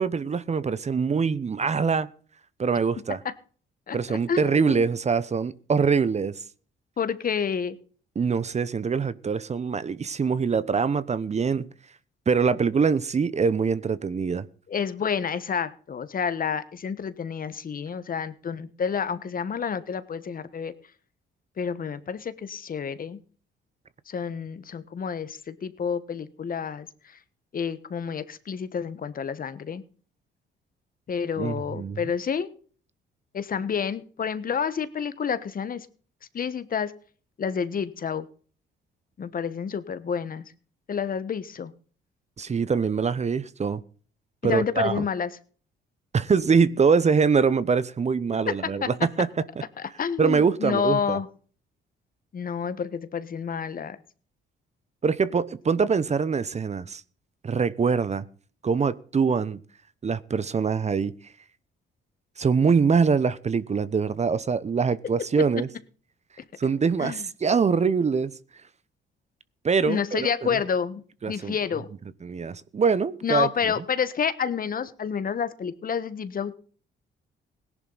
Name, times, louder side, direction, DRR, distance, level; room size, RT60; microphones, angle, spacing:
voice 1, 0.0-2.1 2.6-3.2 3.9-6.4 8.2-11.7 12.3-14.5 31.4-32.0 42.4-43.8 44.4-45.0 46.1-49.4 50.2-51.2 55.0-57.0 57.4-58.3 58.6-59.6 60.0-61.1 62.4-65.7 66.6-68.3 69.6-70.6 71.2-71.6 72.2-73.5, right 5 dB, 35° right, 0.9 m, -24 dB
voice 2, 3.9-4.9 7.0-7.8 14.7-20.7 21.6-23.2 24.1-27.2 27.5-29.8 31.1-32.5 33.3-35.9 36.3-36.9 37.4-38.3 39.2-40.4 40.9-41.7 44.4-45.3 48.5-48.9 49.8-51.3 52.3-54.0 67.0-67.2 69.9-71.0 71.3-71.9 73.2-76.6, left 7 dB, 45° left, 1.3 m, -29 dB
17.5 x 11.0 x 4.1 m
cardioid pair, 90°, 20 cm